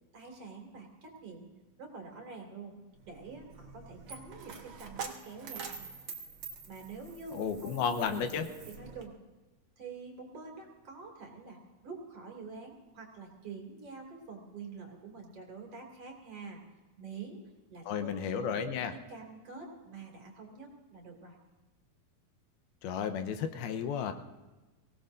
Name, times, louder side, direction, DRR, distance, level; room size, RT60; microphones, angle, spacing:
voice 1, 0.1-1.5 1.8-2.7 3.0-5.9 6.7-9.1 9.8-16.6 17.0-17.4 17.7-21.4, right 4 dB, 45° right, 1 dB, 3.2 m, -46 dB
Coin (dropping), 2.9-9.1, right 5 dB, 90° right, 1.1 m, -46 dB
voice 2, 7.3-8.5 17.9-18.9 22.8-24.1, left 7 dB, 80° left, 8 dB, 2.8 m, -33 dB
24.0 x 17.5 x 2.6 m, 1.2 s
omnidirectional pair, 4.3 m